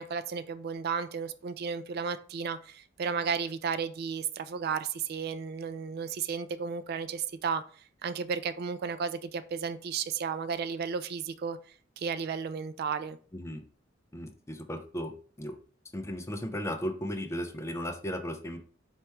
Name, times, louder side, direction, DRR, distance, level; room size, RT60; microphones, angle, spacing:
voice 1, 0.0-7.6 8.0-11.6 12.0-13.2, right 6 dB, 55° right, 0.3 m, -33 dB
voice 2, 14.1-15.1 15.4-15.6 15.9-18.6, equal, 15° left, 0.5 m, -35 dB
4.4 x 2.9 x 3.4 m
head